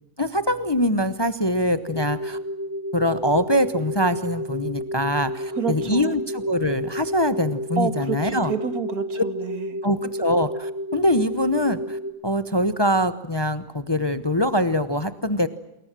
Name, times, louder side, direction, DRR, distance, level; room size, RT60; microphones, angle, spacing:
voice 1, 0.2-2.4 2.9-8.5 9.8-15.5, equal, 20° left, 12 dB, 0.9 m, -23 dB
sound 1, 1.9-12.1, equal, 90° left, 4.0 m, -31 dB
voice 2, 5.6-6.1 7.8-9.7, right 6 dB, 75° right, 10 dB, 2.3 m, -28 dB
28.5 x 22.0 x 7.6 m, 0.94 s
omnidirectional pair, 1.6 m